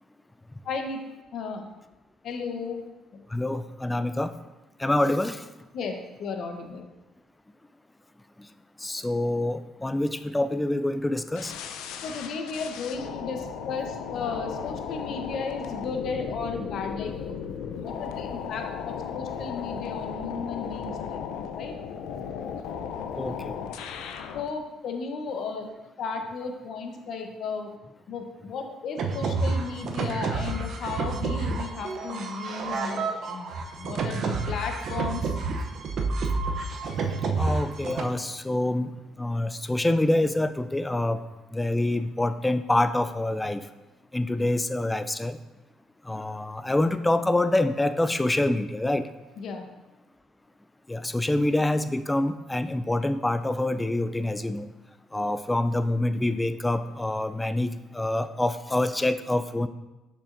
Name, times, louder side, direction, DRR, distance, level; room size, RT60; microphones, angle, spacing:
voice 1, 0.6-1.0 1.3-1.7 2.2-2.8 5.7-6.8 12.0-17.4 17.8-21.3 21.5-21.7 24.3-25.7 26.0-27.7 28.1-35.4 49.4-49.7, left 4 dB, 65° left, 4 dB, 0.9 m, -34 dB
voice 2, 3.3-4.4 4.8-5.5 8.4-8.5 8.8-11.6 18.1-18.2 23.2-23.6 37.3-41.2 41.5-43.7 44.1-45.4 46.0-49.1 50.9-54.7 55.1-59.7, left 1 dB, 15° left, 11 dB, 0.4 m, -26 dB
sound 1, 11.3-24.5, left 7 dB, 80° left, 0.4 m, -36 dB
sound 2, 29.0-38.0, right 4 dB, 65° right, 0.7 m, -29 dB
6.8 x 5.4 x 2.6 m, 1.0 s
supercardioid pair, 75°, 0 cm